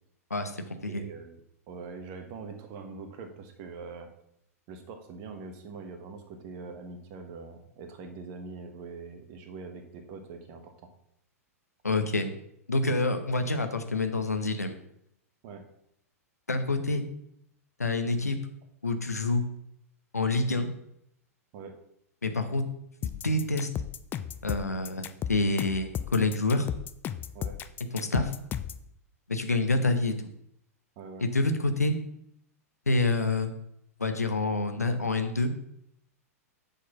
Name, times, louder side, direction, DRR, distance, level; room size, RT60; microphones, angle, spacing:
voice 1, 0.3-1.0 11.8-12.3 12.7-14.8 16.5-17.0 17.8-18.4 18.8-19.5 20.1-20.7 22.2-22.6 23.0-23.7 24.4-26.7 27.9-28.3 29.3-30.1 31.3-32.0 32.9-33.5 34.0-35.5, left 2 dB, 85° left, 7 dB, 0.8 m, -27 dB
voice 2, 0.9-1.4 1.7-4.1 4.7-10.7 15.4-15.6 21.5-21.7 27.3-27.5 31.0-31.2, right 4 dB, 45° right, 6 dB, 1.2 m, -43 dB
sound 1, 23.0-28.8, left 9 dB, 25° left, 0.4 m, -34 dB
6.5 x 4.2 x 5.7 m, 0.75 s
figure-of-eight pair, 100°, 8 cm